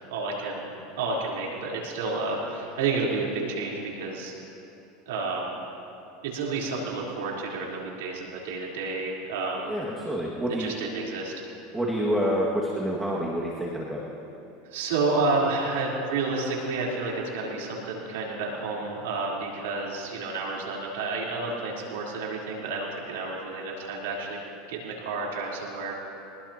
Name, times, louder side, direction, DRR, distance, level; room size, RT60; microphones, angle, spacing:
voice 1, 0.1-4.3 5.1-5.5 6.2-9.7 10.6-11.4 14.7-24.4 24.7-25.9, right 3 dB, 85° right, -4 dB, 3.9 m, -30 dB
voice 2, 9.7-10.7 11.7-14.0, equal, 10° right, -5 dB, 2.0 m, -28 dB
24.5 x 19.5 x 2.9 m, 2.8 s
supercardioid pair, 120°, 0 cm